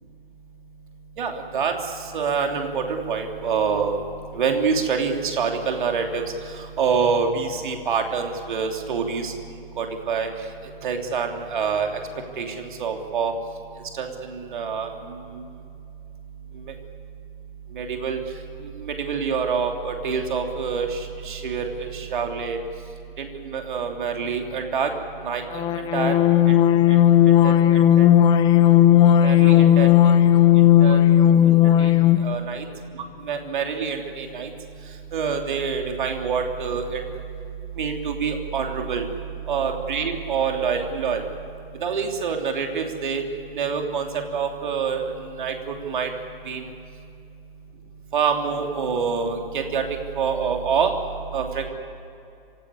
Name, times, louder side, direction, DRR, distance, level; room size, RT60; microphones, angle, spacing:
voice 1, 1.2-4.0 4.3-9.3 9.8-10.3 10.8-12.0 12.4-13.3 13.9-15.4 17.7-18.2 18.6-22.6 23.2-24.9 25.2-25.6 25.9-26.1 26.5-26.6 26.9-27.0 27.4-28.1 29.2-30.1 30.8-31.0 31.8-31.9 32.2-32.6 33.2-34.5 35.1-37.0 37.8-39.1 39.5-41.2 41.8-43.2 43.5-45.1 45.4-46.1 46.5-46.7 48.1-49.9 50.1-50.9 51.3-51.7, right 6 dB, 55° right, 3 dB, 3.0 m, -26 dB
sound 1, 25.5-32.3, left 11 dB, 15° left, 0.7 m, -15 dB
27.0 x 17.5 x 9.8 m, 2.6 s
figure-of-eight pair, 125°, 30 cm